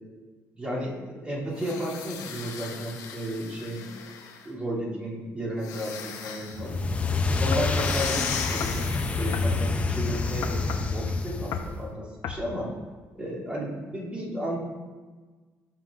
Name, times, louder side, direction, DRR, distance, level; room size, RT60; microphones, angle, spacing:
voice 1, 0.6-3.9 4.4-6.8 7.4-8.8 9.2-12.7 13.1-14.6, equal, 20° right, -7 dB, 2.8 m, -33 dB
sound 1, 1.5-4.5 5.6-6.7 7.6-9.4, left 7 dB, 80° left, 1.0 m, -37 dB
sound 2, 6.5-11.9, left 3 dB, 20° left, 0.5 m, -27 dB
sound 3, 7.5-8.0 8.6-8.8 9.3-9.5 10.4-10.9 11.5-11.8 12.2-12.5, left 7 dB, 65° left, 0.7 m, -34 dB
15.0 x 5.9 x 2.5 m, 1.4 s
cardioid pair, 145°, 6 cm